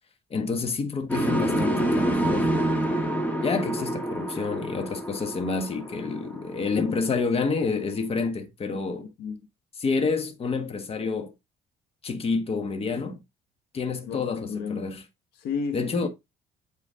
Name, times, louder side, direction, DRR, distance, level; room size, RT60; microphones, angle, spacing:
voice 1, 0.3-2.5 3.4-9.1 9.8-11.3 12.0-13.2 13.7-15.0 15.7-16.1, left 4 dB, 35° left, 1.4 m, -28 dB
sound 1, 1.1-7.1, right 1 dB, 10° left, 1.9 m, -27 dB
voice 2, 9.0-9.4 14.1-14.9 15.4-16.1, left 5 dB, 80° left, 1.4 m, -33 dB
8.3 x 4.5 x 3.6 m
cardioid pair, 110°, 17 cm